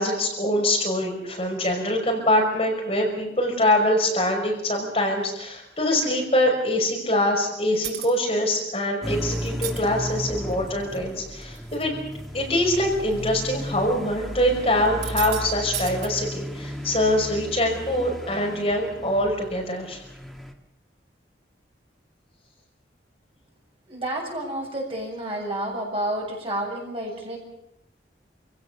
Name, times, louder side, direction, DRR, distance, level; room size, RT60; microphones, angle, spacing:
voice 1, 0.0-11.9 12.3-20.0, left 1 dB, 35° left, 1 dB, 5.6 m, -24 dB
sound 1, 7.8-8.2 9.5-9.8 10.5-11.0 11.4-11.8 12.1-12.3 13.1-13.2 14.9-15.4 15.7-16.1, right 11 dB, 65° right, 3.1 m, -33 dB
sound 2, 9.0-20.5, equal, ahead, 2.0 m, -35 dB
voice 2, 23.9-27.4, right 1 dB, 30° right, -1 dB, 7.6 m, -30 dB
28.0 x 17.0 x 7.0 m, 0.85 s
head